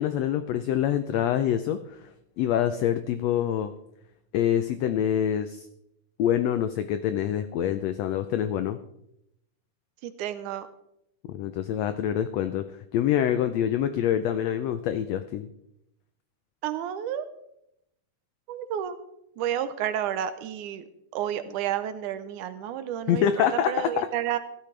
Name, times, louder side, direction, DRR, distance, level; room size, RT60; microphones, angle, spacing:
voice 1, 0.0-1.8 2.4-3.7 4.3-5.7 6.2-8.8 11.3-12.7 12.9-15.5 23.1-23.7 24.0-24.1, left 10 dB, 90° left, 10 dB, 1.4 m, -25 dB
voice 2, 10.0-10.7 16.6-17.3 18.5-19.0 19.4-20.8 21.1-24.4, right 10 dB, 80° right, 11 dB, 2.2 m, -31 dB
16.0 x 12.0 x 3.3 m, 0.80 s
omnidirectional pair, 3.7 m